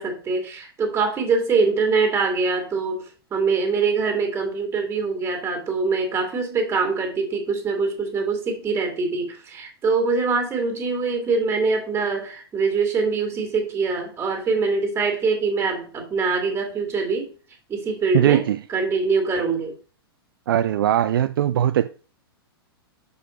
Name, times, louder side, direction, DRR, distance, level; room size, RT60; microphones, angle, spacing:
voice 1, 0.0-17.3 17.7-18.4 18.7-19.7, right 4 dB, 20° right, 2.2 m, -23 dB
voice 2, 18.1-18.6 20.5-21.9, right 11 dB, 60° right, 0.4 m, -20 dB
6.4 x 4.8 x 4.3 m
figure-of-eight pair, 100°, 13 cm